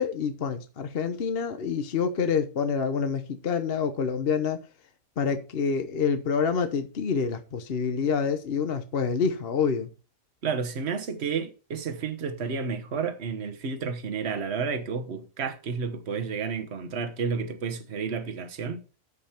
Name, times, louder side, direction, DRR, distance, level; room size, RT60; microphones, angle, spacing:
voice 1, 0.0-4.6 5.2-9.9, left 6 dB, 50° left, 1.0 m, -27 dB
voice 2, 10.4-18.8, right 5 dB, 50° right, 1.4 m, -31 dB
13.0 x 5.3 x 4.4 m
omnidirectional pair, 1.4 m